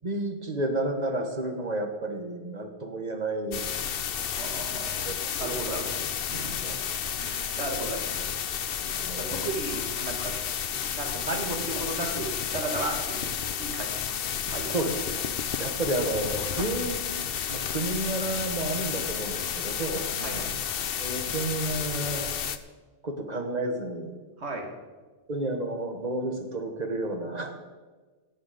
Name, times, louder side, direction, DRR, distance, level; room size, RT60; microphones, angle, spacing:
voice 1, 0.0-3.7 5.0-5.8 6.6-6.8 9.0-9.5 14.6-15.0 15.6-20.1 21.0-22.4 23.0-24.2 25.3-27.5, right 2 dB, 35° right, 4 dB, 1.4 m, -31 dB
sound 1, 3.5-22.6, left 8 dB, 60° left, 0.8 m, -31 dB
voice 2, 4.2-5.9 6.3-6.6 7.2-8.2 8.8-10.3 10.9-13.3 13.6-14.2 14.5-14.8 16.5-16.7 20.2-20.6 24.4-24.7, right 2 dB, 70° right, 2 dB, 2.1 m, -35 dB
17.5 x 7.4 x 5.1 m, 1.3 s
omnidirectional pair, 1.2 m